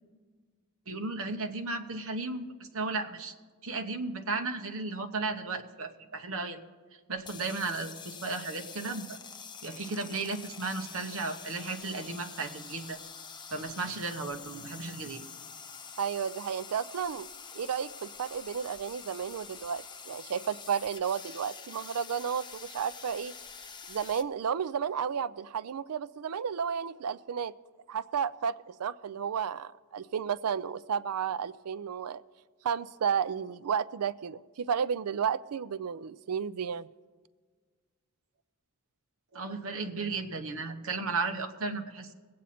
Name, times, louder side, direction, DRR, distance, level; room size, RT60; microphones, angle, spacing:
voice 1, 0.9-3.3 3.6-6.6 7.1-9.2 9.6-13.0 13.5-15.2 39.3-42.1, right 3 dB, 65° right, 6 dB, 1.0 m, -35 dB
sound 1, 7.2-24.2, left 6 dB, 20° left, 0.5 m, -46 dB
voice 2, 16.0-17.3 17.5-23.3 23.9-27.5 27.9-32.2 32.6-36.9, right 7 dB, 85° right, 17 dB, 0.4 m, -32 dB
21.0 x 8.6 x 4.2 m, 1.5 s
head